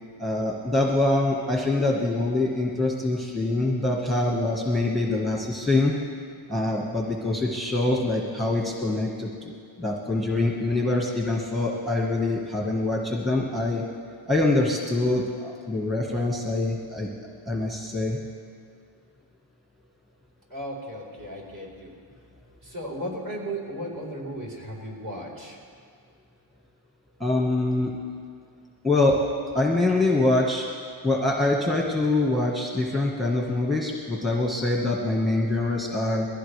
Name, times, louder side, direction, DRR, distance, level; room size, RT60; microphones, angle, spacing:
voice 1, 0.2-5.9 6.5-13.8 14.3-17.1 17.5-18.2 27.2-27.9 28.8-29.2 29.5-30.7 31.0-36.3, left 2 dB, ahead, -1 dB, 1.4 m, -24 dB
voice 2, 20.5-21.9 22.7-25.6, right 1 dB, 45° right, -3 dB, 4.5 m, -35 dB
22.0 x 16.0 x 3.3 m, 2.2 s
cardioid pair, 115°, 48 cm